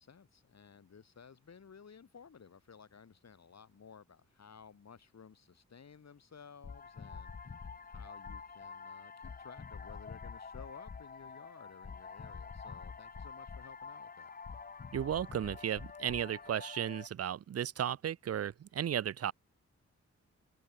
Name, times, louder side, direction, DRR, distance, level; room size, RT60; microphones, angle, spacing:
voice 1, 0.0-14.3, left 6 dB, 60° left, 8.0 m, -56 dB
sound 1, 6.6-17.1, left 5 dB, 30° left, 0.8 m, -47 dB
voice 2, 14.9-19.3, right 10 dB, 55° right, 0.6 m, -35 dB
open air
wide cardioid pair, 155°, 29 cm